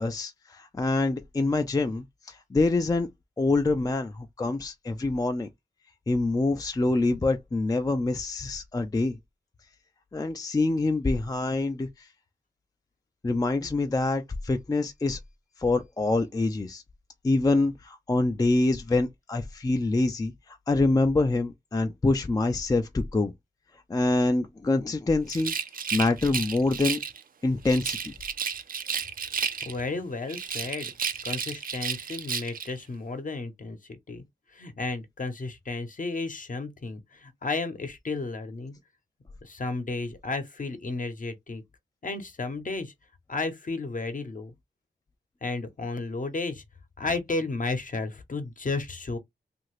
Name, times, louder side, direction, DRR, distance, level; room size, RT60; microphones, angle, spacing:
voice 1, 0.0-3.1 3.4-5.5 6.1-9.2 10.1-12.1 13.2-15.2 15.6-16.8 17.2-23.3 23.9-25.5 25.9-27.0 27.4-28.1, left 2 dB, 20° left, 0.4 m, -25 dB
Rattle, 25.3-27.2 27.6-29.9 30.3-32.7, right 6 dB, 50° right, 0.4 m, -32 dB
voice 2, 29.6-30.9 31.2-34.2 34.5-38.7 39.4-41.6 42.0-42.9 43.3-44.5 45.4-46.6 47.0-49.2, left 3 dB, 45° left, 0.8 m, -33 dB
2.8 x 2.5 x 3.0 m
wide cardioid pair, 85°, 18 cm